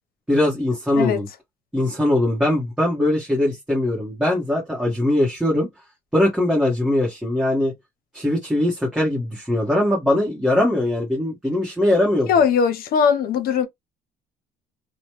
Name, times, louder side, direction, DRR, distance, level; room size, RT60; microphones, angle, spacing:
voice 1, 0.3-1.3 1.7-5.7 6.1-7.7 8.1-12.3, left 1 dB, 5° right, 1.2 m, -21 dB
voice 2, 12.3-13.7, left 7 dB, 65° left, 0.7 m, -19 dB
3.0 x 2.1 x 3.0 m
cardioid pair, 110°, 17 cm